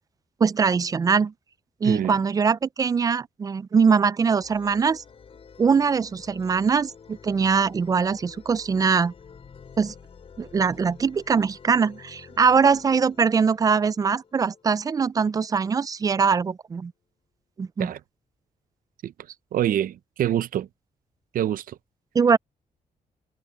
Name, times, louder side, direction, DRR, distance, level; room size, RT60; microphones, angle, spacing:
voice 1, 0.4-1.3 1.8-5.0 5.6-9.1 9.8-9.9 10.4-16.9 17.6-17.9 22.1-22.4, right 5 dB, 25° right, 0.3 m, -22 dB
voice 2, 1.8-2.2 17.8-18.0 19.0-19.1 19.5-20.7 21.3-21.8, right 11 dB, 75° right, 0.6 m, -26 dB
sound 1, 4.4-15.8, left 6 dB, 40° left, 7.0 m, -49 dB
wide cardioid pair, 175°, 15 cm